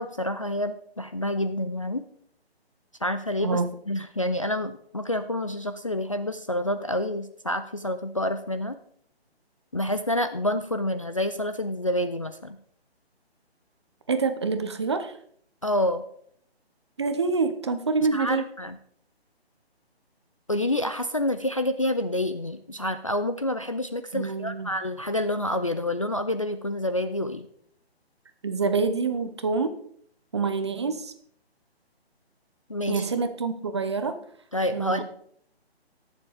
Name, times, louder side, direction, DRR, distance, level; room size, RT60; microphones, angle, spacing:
voice 1, 0.0-2.0 3.0-3.6 3.9-8.8 9.7-12.6 15.6-16.0 18.1-18.8 20.5-27.5 32.7-33.1 34.5-35.0, left 1 dB, 30° left, 9 dB, 0.4 m, -28 dB
voice 2, 14.1-15.2 17.0-18.5 24.1-24.7 28.4-29.8 30.3-31.1 32.9-34.2 34.7-35.0, right 4 dB, 25° right, 9 dB, 0.6 m, -26 dB
18.0 x 7.1 x 3.4 m, 0.65 s
hypercardioid pair, 160°, 32 cm